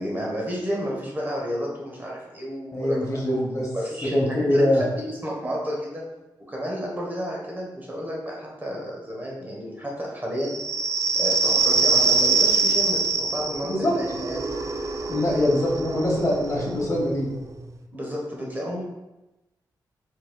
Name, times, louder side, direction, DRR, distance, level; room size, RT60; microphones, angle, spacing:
voice 1, 0.0-3.4 3.7-6.0 6.5-10.5 11.1-14.5 15.4-15.7 17.9-18.8, equal, 25° right, -3 dB, 1.1 m, -31 dB
voice 2, 2.7-3.7 4.1-4.8 13.6-13.9 15.1-17.3, left 1 dB, 45° left, -3 dB, 1.2 m, -23 dB
microsound+souffle, 10.4-17.7, right 4 dB, 45° right, 0.4 m, -24 dB
4.6 x 4.1 x 2.3 m, 1.0 s
cardioid pair, 90°, 8 cm